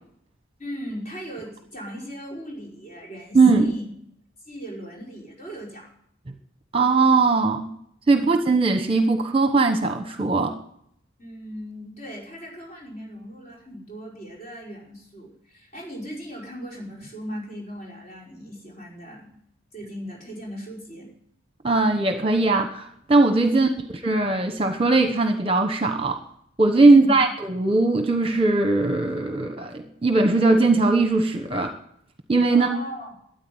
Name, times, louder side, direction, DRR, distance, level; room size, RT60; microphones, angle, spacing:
voice 1, 0.6-3.9 4.5-5.9 8.2-8.4 11.2-19.3 19.7-21.1 23.5-23.8 26.9-27.2 32.5-33.2, equal, 35° left, -3 dB, 5.4 m, -38 dB
voice 2, 3.3-3.7 6.7-7.7 8.1-10.5 21.6-23.7 24.0-26.2 26.6-31.7 32.3-32.7, right 3 dB, 25° right, 6 dB, 1.1 m, -19 dB
13.0 x 9.6 x 9.5 m, 0.71 s
head